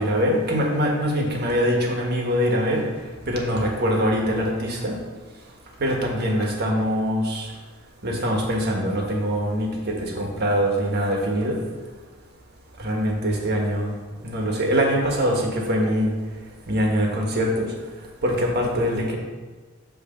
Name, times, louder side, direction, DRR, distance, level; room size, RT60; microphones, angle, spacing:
voice 1, 0.0-2.9 3.3-5.0 5.8-7.5 8.0-11.6 12.8-13.9 14.2-16.1 16.7-17.7 18.2-19.2, equal, 50° right, 0 dB, 1.4 m, -23 dB
8.7 x 3.3 x 6.6 m, 1.4 s
head